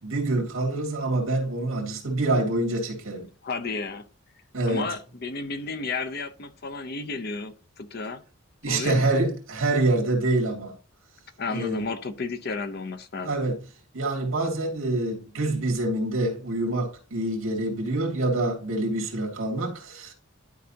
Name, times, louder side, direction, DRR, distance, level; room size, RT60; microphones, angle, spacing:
voice 1, 0.0-3.3 4.5-4.9 8.6-10.7 11.5-11.9 13.2-13.6 13.9-20.1, right 2 dB, 70° right, 2.5 m, -26 dB
voice 2, 3.4-4.0 4.7-8.2 8.7-9.1 11.4-13.3, left 3 dB, 45° left, 0.7 m, -32 dB
12.0 x 4.9 x 2.8 m
head